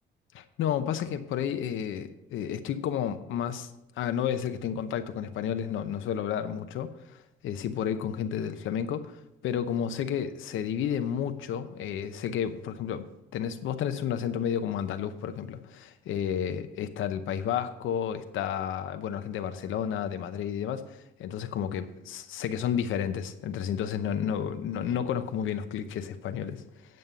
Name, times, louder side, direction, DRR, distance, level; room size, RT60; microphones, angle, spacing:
voice 1, 0.3-3.7 4.0-26.6, left 9 dB, 80° left, 9 dB, 0.8 m, -31 dB
9.3 x 5.4 x 8.0 m, 0.86 s
cardioid pair, 90°, 20 cm